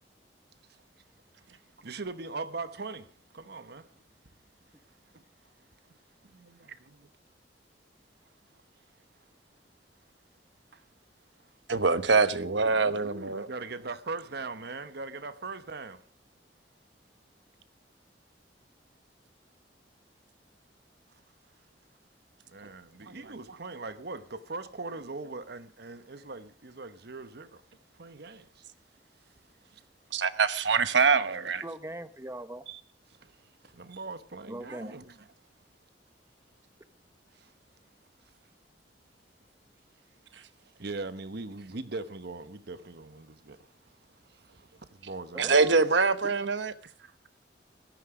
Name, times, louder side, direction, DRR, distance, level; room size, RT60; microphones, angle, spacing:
voice 1, 1.8-3.9 6.6-6.8 10.7-10.8 12.7-16.0 22.5-27.6 27.9-28.6 29.7-29.8 33.2-33.3 33.7-35.2 37.4-37.5 40.8-43.7 44.3-45.7 47.0-47.1, right 3 dB, 65° right, 1.1 m, -40 dB
voice 2, 11.7-13.5 30.1-31.6 45.4-46.7, right 4 dB, 85° right, 1.1 m, -24 dB
voice 3, 31.6-32.6 34.5-35.0 45.3-45.8, right 1 dB, 15° right, 1.1 m, -40 dB
15.5 x 13.5 x 5.0 m
head